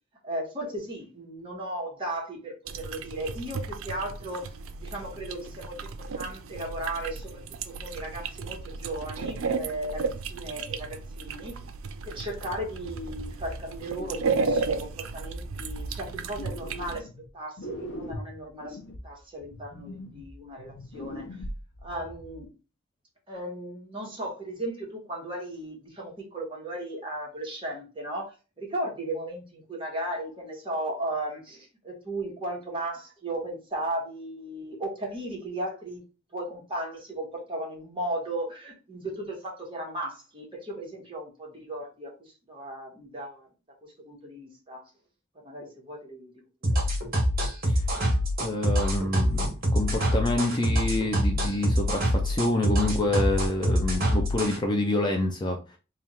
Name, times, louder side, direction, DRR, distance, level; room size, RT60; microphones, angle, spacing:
voice 1, 0.2-11.7 12.0-17.1 17.3-18.8 19.0-21.3 21.8-22.5 23.3-36.0 36.3-43.5 43.8-44.9 45.4-46.3 46.7-46.8, right 1 dB, 25° right, 1.4 m, -36 dB
sound 1, 2.7-17.0, right 4 dB, 80° right, 0.4 m, -34 dB
sound 2, 12.4-14.8 15.3-17.3 17.6-22.4, equal, 80° left, 0.8 m, -41 dB
sound 3, 46.6-54.6, equal, 45° right, 1.7 m, -25 dB
voice 2, 48.4-55.6, left 2 dB, 20° left, 0.5 m, -27 dB
3.5 x 2.5 x 4.2 m
head